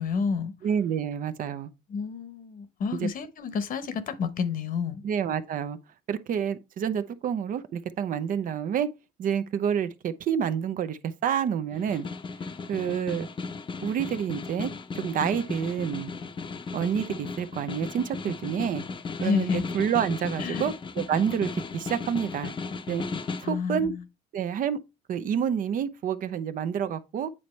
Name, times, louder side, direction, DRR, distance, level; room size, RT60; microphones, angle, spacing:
voice 1, 0.0-0.5 1.9-5.0 19.2-19.6 20.4-20.7 23.4-24.0, left 5 dB, 55° left, 1.0 m, -29 dB
voice 2, 0.6-1.7 3.0-3.1 5.0-5.8 6.1-8.9 9.2-12.1 12.7-13.3 13.8-16.1 16.7-18.8 19.2-22.5 22.9-23.0 23.4-23.9 24.3-24.8 25.1-27.3, right 8 dB, 55° right, 0.6 m, -28 dB
Snare drum, 11.7-23.6, left 4 dB, 30° left, 0.7 m, -36 dB
8.6 x 4.1 x 3.2 m
cardioid pair, 110°, 17 cm